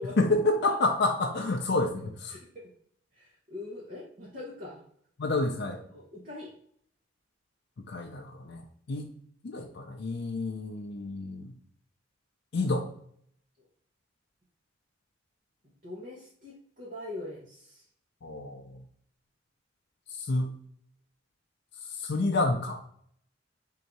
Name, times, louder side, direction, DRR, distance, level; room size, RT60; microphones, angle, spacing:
voice 1, 0.2-2.4 5.2-5.8 7.9-9.1 9.4-11.5 12.5-12.9 18.2-18.8 20.1-20.6 21.8-22.8, left 2 dB, 60° left, 1 dB, 0.5 m, -29 dB
voice 2, 2.3-2.7 3.1-4.8 5.7-6.5 8.4-8.5 15.8-17.9, left 2 dB, 45° right, -5 dB, 1.0 m, -42 dB
3.8 x 2.7 x 4.5 m, 0.65 s
head